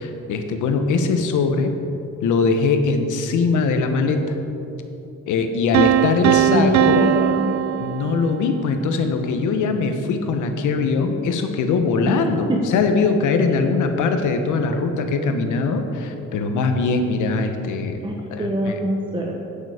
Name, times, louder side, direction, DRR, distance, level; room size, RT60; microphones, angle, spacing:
voice 1, 0.0-1.7 2.2-4.3 5.3-7.1 7.8-18.0 18.3-18.8, left 4 dB, 80° left, 6 dB, 1.1 m, -21 dB
sound 1, 5.7-8.6, right 12 dB, 70° right, 0.4 m, -20 dB
voice 2, 6.2-7.5 12.0-12.6 18.0-19.4, right 1 dB, 15° right, 0 dB, 1.0 m, -24 dB
9.1 x 9.0 x 4.9 m, 2.9 s
cardioid pair, 90°, 30 cm